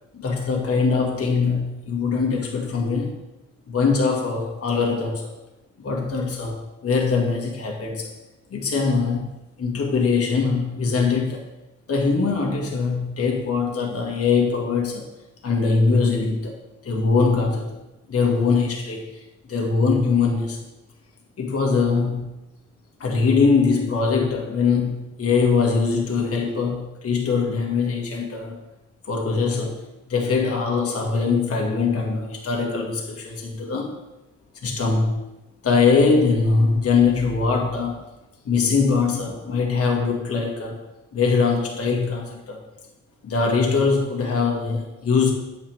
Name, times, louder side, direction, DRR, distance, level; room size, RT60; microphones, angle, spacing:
voice 1, 0.1-3.2 3.7-5.3 5.8-8.1 8.5-11.5 11.9-15.1 15.4-17.8 18.1-19.2 19.5-20.6 21.4-22.3 23.0-28.6 29.0-34.0 34.6-35.2 35.6-38.1 38.4-40.8 41.1-42.6 43.2-45.3, left 4 dB, 50° left, 0 dB, 1.9 m, -22 dB
9.0 x 7.2 x 3.5 m, 0.95 s
cardioid pair, 90°, 30 cm